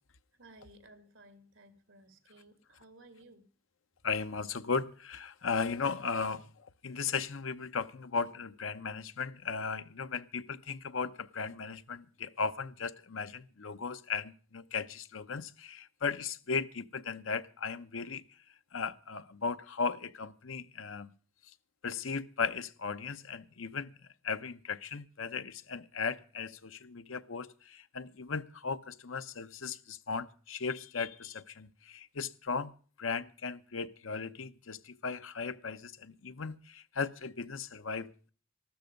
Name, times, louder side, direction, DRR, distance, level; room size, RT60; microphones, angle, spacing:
voice 1, 0.4-3.5, right 2 dB, 80° right, 2.2 m, -57 dB
voice 2, 4.0-18.2 18.7-21.1 21.4-21.5 21.8-38.3, left 5 dB, 85° left, 0.8 m, -37 dB
14.0 x 13.0 x 5.2 m
head